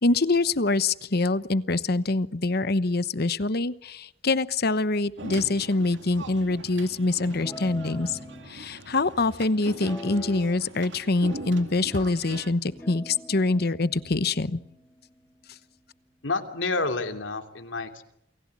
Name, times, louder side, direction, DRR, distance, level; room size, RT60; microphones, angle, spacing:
voice 1, 0.0-8.2 8.5-14.6, left 3 dB, 55° left, 15 dB, 1.0 m, -25 dB
sound 1, 5.2-12.5, right 2 dB, 75° right, 2.3 m, -42 dB
Guitar, 7.3-8.5 9.7-10.7 11.0-12.1 12.7-16.2, equal, 15° left, 2.6 m, -44 dB
voice 2, 16.2-18.0, left 3 dB, 85° left, 5 dB, 2.9 m, -29 dB
29.0 x 20.0 x 8.6 m, 0.77 s
head